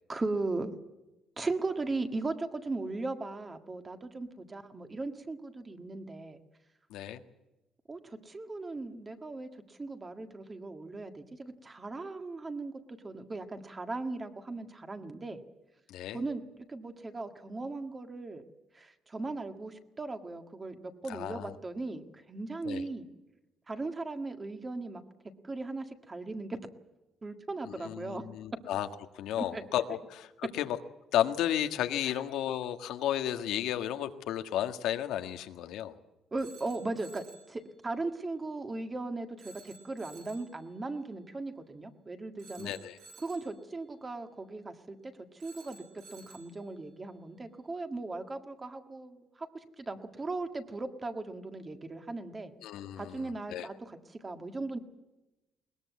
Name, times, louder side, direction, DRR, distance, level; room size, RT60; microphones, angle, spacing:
voice 1, 0.1-0.7 1.4-6.4 7.9-12.7 13.0-15.4 16.1-16.4 16.7-18.4 18.7-23.0 23.7-25.0 25.4-26.6 27.2-28.2 29.5-29.6 32.1-32.2 36.3-42.7 43.2-45.8 46.1-52.5 53.0-54.8, right 3 dB, 20° right, 7 dB, 1.8 m, -38 dB
voice 2, 6.9-7.2 15.9-16.2 21.1-21.6 22.6-22.8 27.7-28.9 29.1-30.8 31.1-36.0 42.6-43.0 52.6-53.7, left 11 dB, 80° left, 7 dB, 1.7 m, -33 dB
Telephone, 36.4-37.5 39.4-40.5 42.4-43.6 45.4-46.6, right 4 dB, 65° right, 4.9 m, -54 dB
21.5 x 21.0 x 8.3 m, 1.0 s
cardioid pair, 165°, 0 cm